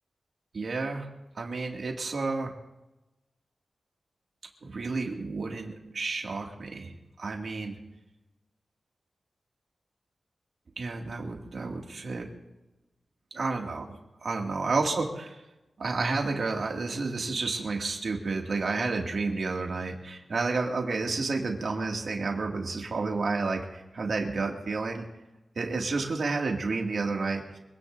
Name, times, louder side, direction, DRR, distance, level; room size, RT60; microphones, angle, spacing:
voice 1, 0.5-1.1 1.4-2.5 4.6-6.9 7.2-7.8 10.8-12.3 13.3-13.8 14.2-15.4 15.8-25.0 25.6-27.6, right 3 dB, 65° right, 0 dB, 2.2 m, -30 dB
25.5 x 17.5 x 2.7 m, 1.0 s
wide cardioid pair, 135°, 0 cm